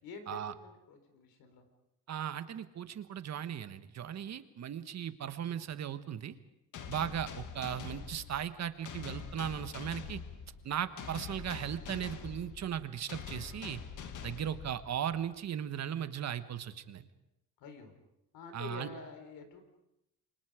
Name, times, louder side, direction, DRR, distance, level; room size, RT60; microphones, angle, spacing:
voice 1, 0.0-1.7 17.6-17.9 18.3-19.6, left 4 dB, 80° left, 6 dB, 4.6 m, -47 dB
voice 2, 2.1-6.3 6.9-10.2 10.6-13.8 14.2-17.1 18.5-18.9, right 9 dB, 50° right, 11 dB, 1.4 m, -37 dB
sound 1, 6.7-15.2, left 7 dB, 60° left, 2.0 m, -45 dB
28.5 x 24.0 x 5.1 m, 0.87 s
cardioid pair, 130°, 35 cm